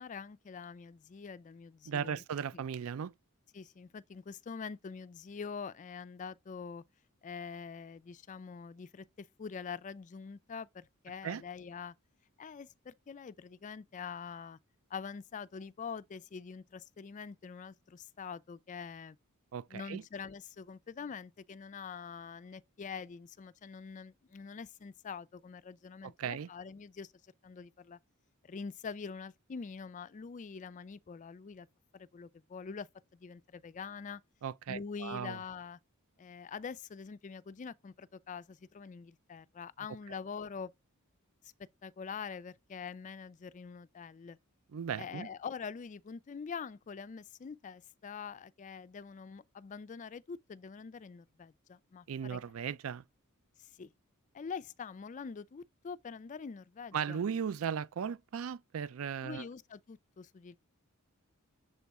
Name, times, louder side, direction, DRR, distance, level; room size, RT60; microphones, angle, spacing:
voice 1, 0.0-2.2 2.5-2.6 3.5-6.8 7.2-11.9 12.4-14.6 14.9-19.2 19.7-27.1 27.4-28.0 28.4-31.7 31.9-34.2 34.7-35.8 36.2-40.7 41.8-44.4 45.0-52.4 53.6-53.9 54.3-57.2 59.2-60.6, left 5 dB, 35° left, 0.3 m, -45 dB
voice 2, 1.9-3.1 11.2-11.4 19.5-20.0 26.0-26.5 34.4-35.4 44.7-45.3 52.1-53.0 56.9-59.5, right 7 dB, 65° right, 0.4 m, -37 dB
6.8 x 4.1 x 3.5 m
head